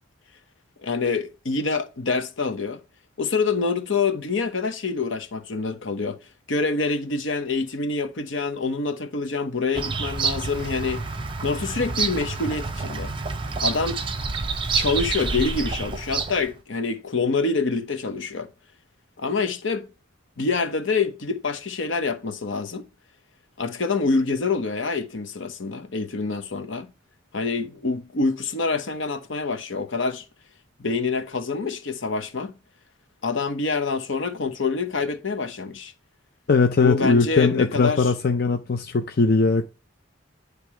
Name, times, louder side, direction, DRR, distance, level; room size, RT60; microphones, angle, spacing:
voice 1, 0.8-2.8 3.2-6.2 6.5-11.0 11.4-13.1 13.6-14.0 14.7-18.5 19.2-19.9 20.4-22.8 23.6-26.9 27.3-30.2 30.8-32.5 33.2-35.9 36.8-38.1, left 4 dB, 70° left, 1.0 m, -26 dB
Bird vocalization bird call bird song, 9.7-16.5, right 4 dB, 25° right, 0.7 m, -28 dB
voice 2, 36.5-39.7, left 4 dB, 50° left, 0.5 m, -20 dB
10.5 x 3.5 x 4.8 m
head